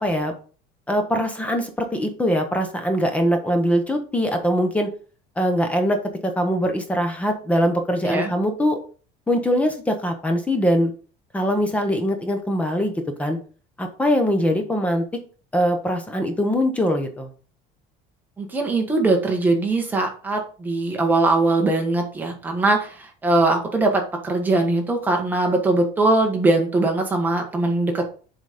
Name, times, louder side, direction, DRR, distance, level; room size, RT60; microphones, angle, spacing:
voice 1, 0.0-0.3 0.9-4.9 5.4-6.0 6.2-8.8 9.3-10.9 11.3-12.9 13.2-13.4 13.8-15.0 15.5-17.3, equal, 10° left, 5 dB, 0.9 m, -22 dB
voice 2, 18.4-28.1, right 2 dB, 10° right, 2 dB, 1.4 m, -21 dB
7.5 x 4.1 x 5.0 m, 0.39 s
cardioid pair, 180°, 17 cm